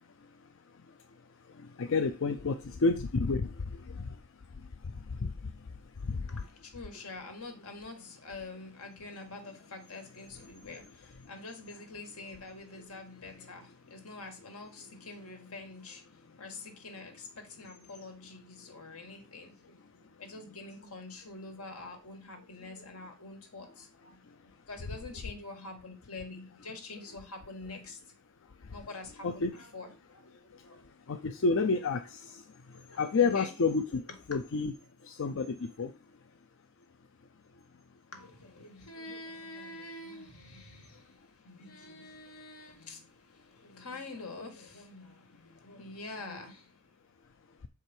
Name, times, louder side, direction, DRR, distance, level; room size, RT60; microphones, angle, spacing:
voice 1, 0.0-6.4 24.2-24.4 28.4-28.7 29.2-29.5 30.6-34.0 34.3-34.7 35.0-36.0 40.9-41.0, left 4 dB, 60° left, 0.5 m, -32 dB
voice 2, 6.3-28.0 28.7-30.8 31.3-31.6 32.7-33.5 38.1-46.8, left 3 dB, 85° left, 1.8 m, -46 dB
6.8 x 5.0 x 4.4 m
head